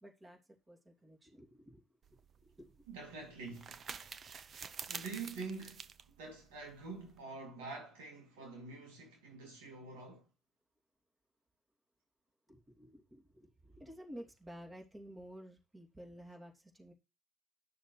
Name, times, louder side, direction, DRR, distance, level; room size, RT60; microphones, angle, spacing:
voice 1, 0.0-2.8 12.5-16.9, equal, 20° right, 2.8 m, -53 dB
sound 1, 2.0-7.2, right 6 dB, 45° right, 0.8 m, -49 dB
voice 2, 2.9-3.8 4.9-10.3, right 4 dB, 75° right, 2.7 m, -46 dB
11.5 x 6.4 x 3.2 m
hypercardioid pair, 60°, 0 cm